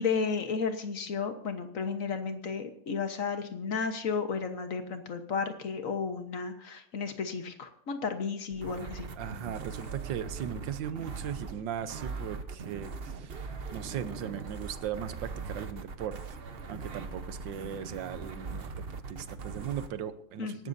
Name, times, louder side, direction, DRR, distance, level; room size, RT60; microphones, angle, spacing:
voice 1, 0.0-9.1 20.4-20.7, left 5 dB, 50° left, 7 dB, 1.5 m, -33 dB
sound 1, 8.5-19.9, right 4 dB, 40° right, 1.0 m, -40 dB
voice 2, 9.2-16.2 16.7-20.7, right 9 dB, 90° right, 12 dB, 1.6 m, -38 dB
25.0 x 12.5 x 2.7 m, 0.70 s
omnidirectional pair, 1.9 m